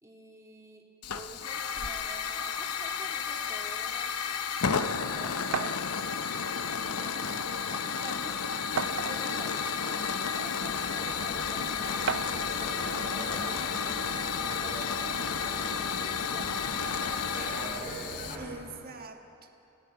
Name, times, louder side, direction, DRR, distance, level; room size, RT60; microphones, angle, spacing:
voice 1, 0.0-0.9 1.1-4.1 4.7-6.0 6.6-8.4 9.0-12.9 14.6-17.9, right 1 dB, 15° right, -2 dB, 2.6 m, -49 dB
Hiss / Fire, 1.0-18.4, left 6 dB, 85° left, 0.8 m, -32 dB
sound 1, 5.5-5.8 6.9-7.0 7.5-7.6 8.8-9.4 10.2-10.3 12.1-12.5, right 6 dB, 60° right, 0.5 m, -32 dB
sound 2, 10.6-18.4, equal, 35° left, 5.5 m, -42 dB
voice 2, 12.7-13.7 14.0-14.6 18.4-19.5, right 3 dB, 45° right, 4 dB, 1.6 m, -46 dB
29.5 x 17.0 x 5.9 m, 2.8 s
head